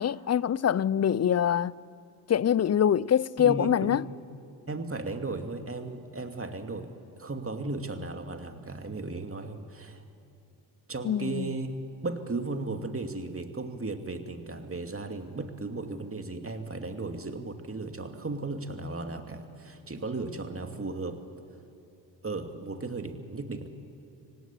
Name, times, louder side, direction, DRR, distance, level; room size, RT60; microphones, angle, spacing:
voice 1, 0.0-1.7 2.3-4.0 11.0-11.5, left 9 dB, 35° left, 0.5 m, -24 dB
voice 2, 3.4-4.0 4.7-10.0 10.9-11.7 12.0-21.2 22.2-23.7, right 3 dB, 25° right, 2.5 m, -35 dB
25.5 x 17.0 x 9.9 m
supercardioid pair, 50°, 48 cm